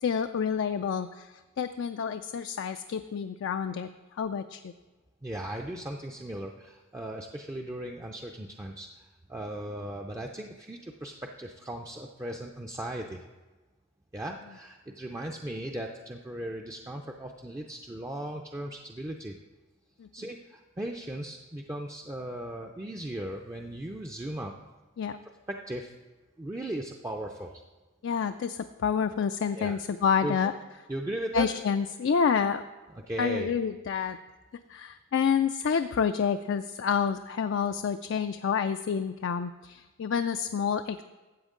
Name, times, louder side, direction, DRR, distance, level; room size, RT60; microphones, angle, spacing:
voice 1, 0.0-3.9 4.2-4.7 20.0-20.1 25.0-25.2 28.0-30.5 31.3-32.6 33.2-34.2 34.7-41.0, left 6 dB, 60° left, 8 dB, 0.3 m, -28 dB
voice 2, 5.2-13.2 14.1-19.4 20.1-24.5 25.5-25.9 26.4-27.6 29.6-29.8 30.2-30.5 30.9-31.5 33.1-33.5, right 1 dB, 15° right, 1 dB, 0.4 m, -37 dB
13.5 x 7.9 x 3.7 m, 1.2 s
head